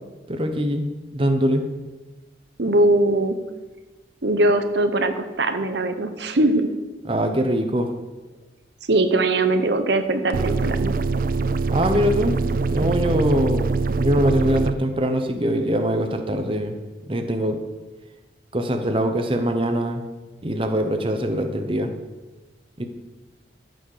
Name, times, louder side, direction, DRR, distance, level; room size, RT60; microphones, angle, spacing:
voice 1, 0.3-0.9 1.1-1.7 7.1-7.9 11.7-12.4 12.7-16.7 17.1-17.6 18.5-20.0 20.4-21.9 22.8-22.9, equal, 30° right, 5 dB, 0.9 m, -22 dB
voice 2, 2.6-3.4 4.2-6.7 8.9-10.9, right 2 dB, 65° right, 8 dB, 0.9 m, -21 dB
sound 1, 10.3-14.7, right 4 dB, 50° right, 0.4 m, -23 dB
14.0 x 6.4 x 6.7 m, 1.2 s
head